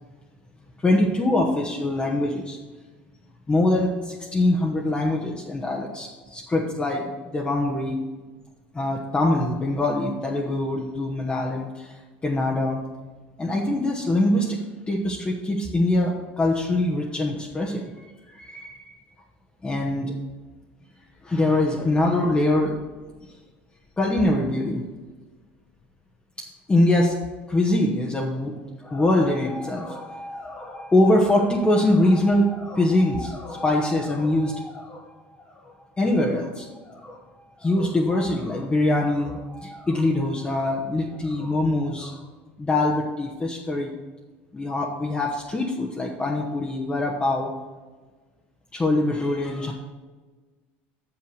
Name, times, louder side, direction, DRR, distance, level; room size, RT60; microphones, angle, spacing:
voice 1, 0.8-2.6 3.5-8.0 8.7-12.8 13.4-14.6 14.9-19.0 19.6-20.1 21.2-22.8 24.0-24.8 26.4-27.2 27.5-28.6 28.8-35.1 35.6-37.2 37.6-42.2 42.6-43.9 44.5-47.5 48.7-49.7, left 1 dB, 20° left, -2 dB, 1.2 m, -23 dB
7.3 x 6.0 x 6.4 m, 1.3 s
hypercardioid pair, 85°, 6 cm